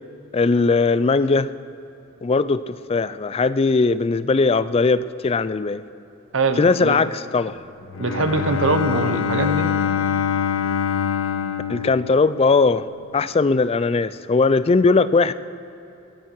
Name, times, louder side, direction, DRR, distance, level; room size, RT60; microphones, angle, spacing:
voice 1, 0.3-1.5 2.2-5.8 6.6-7.6 11.7-12.9 13.1-15.3, left 4 dB, 30° left, 16 dB, 0.3 m, -19 dB
voice 2, 6.3-7.0 8.0-9.7, right 3 dB, 70° right, 8 dB, 1.0 m, -22 dB
Bowed string instrument, 7.8-12.8, left 7 dB, 75° left, 0.6 m, -24 dB
21.5 x 12.5 x 4.7 m, 2.8 s
head